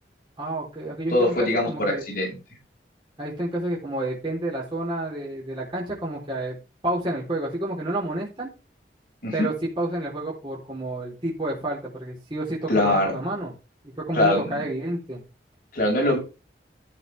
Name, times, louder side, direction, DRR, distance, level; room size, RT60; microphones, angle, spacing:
voice 1, 0.4-2.0 3.2-6.6 6.8-8.5 9.3-13.5 14.0-15.2, right 1 dB, 30° right, -4 dB, 3.9 m, -30 dB
voice 2, 1.1-2.4 9.2-9.5 12.7-13.1 14.1-14.7 15.7-16.2, left 1 dB, 50° left, -1 dB, 6.4 m, -22 dB
13.0 x 7.9 x 3.6 m, 0.30 s
head